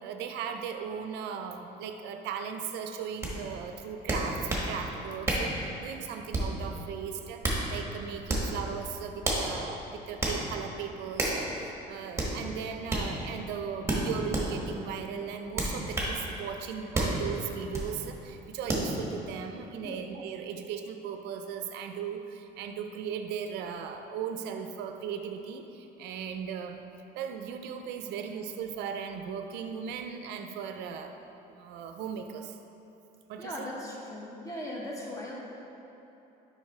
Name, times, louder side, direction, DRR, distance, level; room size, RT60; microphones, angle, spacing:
voice 1, 0.0-26.8 27.2-31.1 31.5-32.6 33.3-33.7, right 7 dB, 85° right, 6 dB, 0.4 m, -37 dB
sound 1, 3.2-3.3 4.1-4.7 5.2-5.5 6.3-6.6 7.2-7.6 8.2-8.5 9.2-9.5 10.2-10.4 11.2-11.4 12.1-12.3 12.9-13.1 13.9-14.5 15.5-16.1 16.9-17.2 17.7-17.9 18.7-18.9, right 2 dB, 15° right, 1.2 m, -29 dB
voice 2, 33.4-35.3, left 1 dB, 20° left, -4 dB, 1.2 m, -38 dB
7.2 x 5.2 x 3.2 m, 3.0 s
cardioid pair, 110°, 17 cm